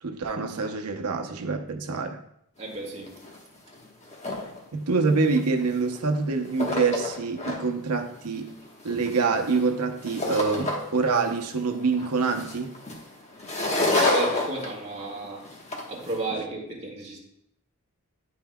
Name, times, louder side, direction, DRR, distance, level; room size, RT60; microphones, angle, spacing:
voice 1, 0.0-2.2 4.7-8.5 8.8-12.8, right 4 dB, 85° right, 0.7 m, -26 dB
voice 2, 2.6-3.1 14.0-15.4 15.9-17.2, right 2 dB, 30° right, 1.6 m, -33 dB
sound 1, 2.7-2.8 3.1-3.4 3.7-4.6 5.3-6.1 6.4-7.6 8.0-11.1 11.4-16.2, left 2 dB, 30° left, 1.1 m, -29 dB
10.5 x 5.5 x 2.2 m
head